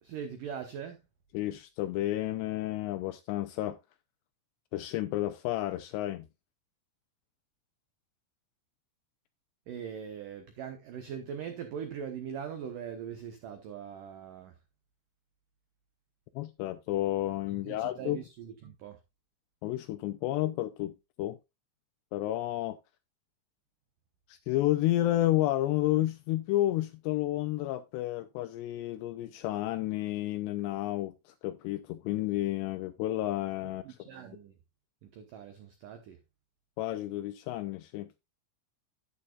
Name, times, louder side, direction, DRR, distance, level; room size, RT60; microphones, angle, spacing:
voice 1, 0.0-1.0 9.7-14.5 17.6-19.0 33.8-34.5 35.0-36.2, right 8 dB, 85° right, 1.8 m, -41 dB
voice 2, 1.3-3.8 4.7-6.3 16.4-18.2 19.6-21.4 22.1-22.8 24.3-34.1 36.8-38.1, left 15 dB, 85° left, 2.5 m, -31 dB
11.0 x 10.0 x 2.4 m
omnidirectional pair, 5.5 m